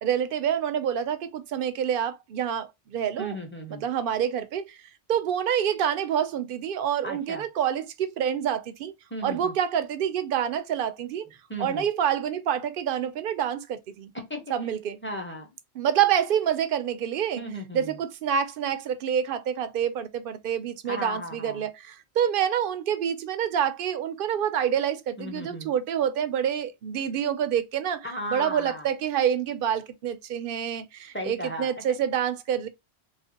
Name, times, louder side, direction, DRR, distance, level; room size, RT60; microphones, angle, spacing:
voice 1, 0.0-3.4 3.7-4.8 5.1-8.9 9.2-11.2 11.6-14.1 14.5-15.0 15.7-17.4 17.7-32.7, right 9 dB, 60° right, 0.6 m, -27 dB
voice 2, 3.2-3.8 7.0-7.5 9.1-9.5 11.5-11.8 14.1-14.4 15.0-15.5 17.4-18.0 20.9-21.7 25.2-25.7 28.0-28.9 31.1-32.0, equal, 10° left, 0.7 m, -35 dB
3.2 x 3.1 x 2.8 m
omnidirectional pair, 1.2 m